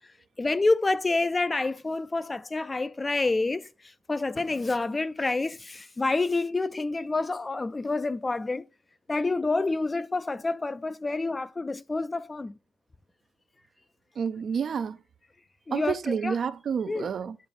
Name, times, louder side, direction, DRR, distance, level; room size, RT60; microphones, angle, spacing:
voice 1, 0.4-8.6 9.1-12.5 15.7-16.3 16.9-17.1, left 3 dB, 20° left, 0.3 m, -28 dB
voice 2, 14.2-15.0 15.7-17.4, right 6 dB, 55° right, 0.5 m, -29 dB
8.6 x 3.1 x 4.1 m
cardioid pair, 90°, 0 cm